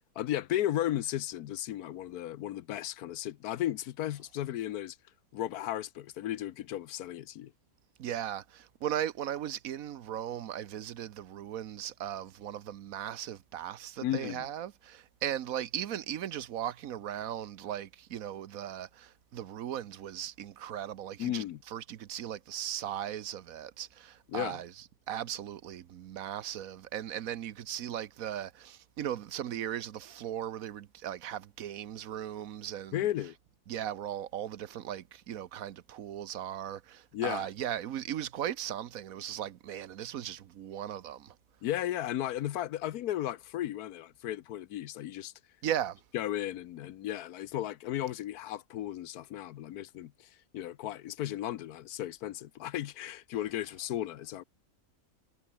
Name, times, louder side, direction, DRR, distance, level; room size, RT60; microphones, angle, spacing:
voice 1, 0.2-5.0 5.3-7.5 14.0-14.5 21.2-21.6 24.3-24.6 32.9-33.4 37.1-37.5 41.6-45.3 46.1-50.1 50.5-54.4, left 12 dB, 85° left, 1.3 m, -35 dB
voice 2, 8.0-24.7 25.1-33.1 33.7-41.3 45.6-46.0, right 10 dB, 70° right, 1.2 m, -37 dB
omnidirectional pair, 1.6 m